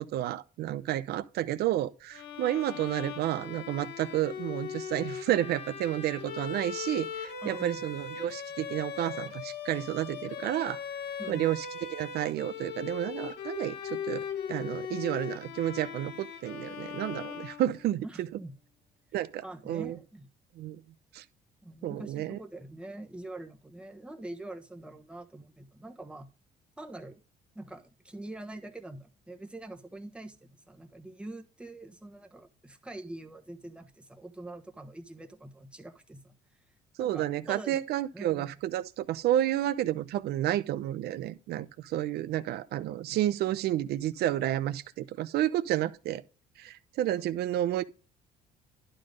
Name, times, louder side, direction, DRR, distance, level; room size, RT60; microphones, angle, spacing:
voice 1, 0.0-10.8 11.3-18.3 19.1-20.0 20.6-20.8 21.1-21.2 21.8-22.4 37.0-46.2 46.6-47.8, right 13 dB, 70° right, 0.7 m, -31 dB
Bowed string instrument, 2.1-18.1, left 7 dB, 85° left, 1.2 m, -39 dB
voice 2, 7.4-7.8 11.2-11.4 18.0-18.5 19.4-20.3 21.6-26.3 26.8-27.2 27.5-36.3 37.0-37.8 38.1-38.5, right 2 dB, 5° right, 1.2 m, -44 dB
11.5 x 3.9 x 5.1 m
cardioid pair, 110°, 17 cm